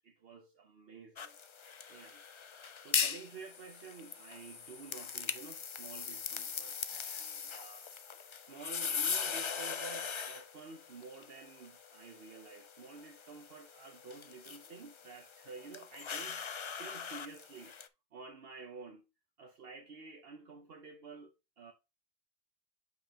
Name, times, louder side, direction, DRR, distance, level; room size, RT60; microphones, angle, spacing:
voice 1, 0.0-1.4 1.9-7.9 8.3-16.5 16.8-17.8 18.1-19.0 19.4-21.7, right 4 dB, 60° right, 1.0 m, -51 dB
sound 1, 1.2-17.9, left 6 dB, 55° left, 0.3 m, -40 dB
7.5 x 5.5 x 2.8 m
omnidirectional pair, 1.2 m